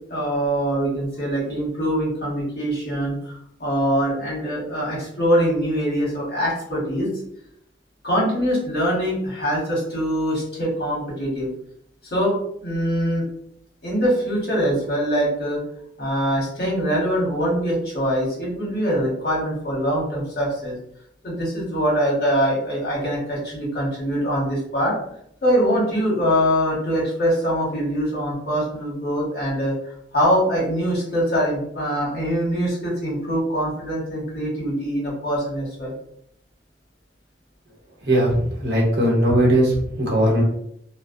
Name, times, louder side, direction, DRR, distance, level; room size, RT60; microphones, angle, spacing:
voice 1, 0.1-7.1 8.0-11.5 12.1-12.3 12.6-13.2 13.8-15.6 16.0-20.7 21.2-24.9 25.4-29.7 30.1-35.9, equal, 60° left, -5 dB, 1.2 m, -23 dB
voice 2, 38.0-40.4, right 1 dB, 70° right, -3 dB, 0.9 m, -19 dB
2.4 x 2.1 x 2.5 m, 0.72 s
head